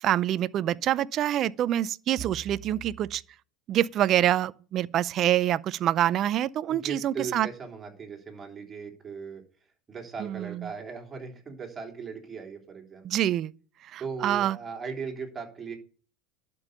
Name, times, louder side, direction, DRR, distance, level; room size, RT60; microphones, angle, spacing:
voice 1, 0.0-3.2 3.7-7.5 10.2-10.7 13.0-13.5 13.9-14.6, right 12 dB, 45° right, 0.5 m, -26 dB
voice 2, 6.7-9.4 9.9-13.1 14.0-15.8, right 5 dB, 25° right, 3.5 m, -38 dB
12.0 x 5.4 x 6.8 m
hypercardioid pair, 90°, 0 cm